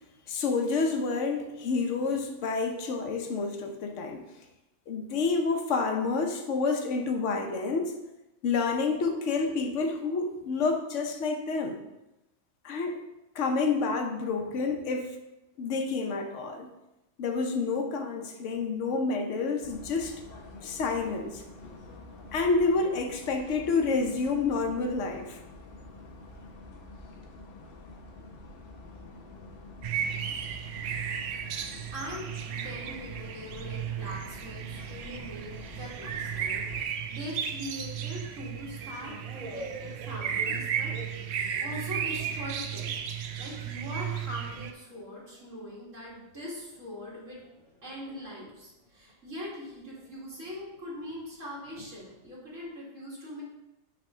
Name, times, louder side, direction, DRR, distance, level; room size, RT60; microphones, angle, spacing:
voice 1, 0.3-4.4 4.9-8.0 8.4-11.8 12.6-13.0 13.3-15.2 15.6-16.7 17.2-20.2 20.6-21.4 22.3-25.4, left 4 dB, 70° left, 4 dB, 1.1 m, -29 dB
sound 1, 19.6-36.8, left 2 dB, 50° left, 1.0 m, -47 dB
sound 2, 29.8-44.7, right 8 dB, 65° right, 0.7 m, -34 dB
voice 2, 31.9-40.9 41.2-43.0 43.4-47.4 47.8-53.4, equal, 85° right, -6 dB, 2.3 m, -42 dB
sound 3, 38.1-43.3 43.7-52.6, right 1 dB, 40° right, 1.3 m, -49 dB
6.1 x 3.4 x 5.5 m, 0.96 s
omnidirectional pair, 1.3 m